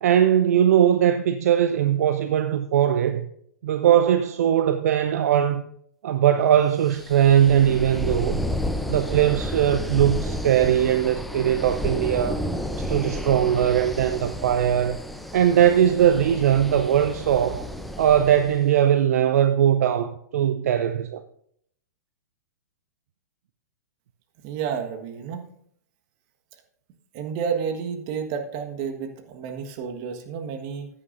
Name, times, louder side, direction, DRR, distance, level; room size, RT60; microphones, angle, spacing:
voice 1, 0.0-3.3 3.6-5.6 6.0-8.4 8.9-12.4 12.8-15.0 15.3-17.6 18.0-21.2, right 10 dB, 60° right, 0.6 m, -20 dB
sound 1, 6.9-18.6, left 1 dB, ahead, 0.6 m, -31 dB
voice 2, 24.4-25.4 27.1-30.9, right 7 dB, 40° right, 1.5 m, -30 dB
14.5 x 9.6 x 2.6 m
figure-of-eight pair, 115°, 9 cm